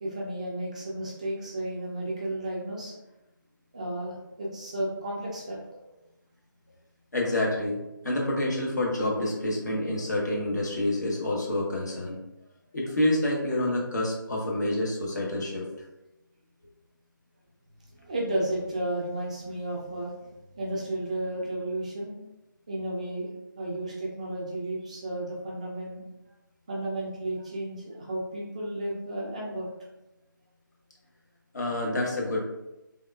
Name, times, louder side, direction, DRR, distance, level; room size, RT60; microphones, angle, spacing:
voice 1, 0.0-3.0 3.7-5.6 18.0-22.2 22.7-23.3 23.6-26.1 26.7-29.7, right 1 dB, 20° right, -4 dB, 0.4 m, -33 dB
voice 2, 7.1-12.2 12.7-15.7 31.5-32.5, left 1 dB, 55° left, -3 dB, 0.9 m, -28 dB
3.4 x 2.4 x 2.2 m, 0.96 s
figure-of-eight pair, 155°, 11 cm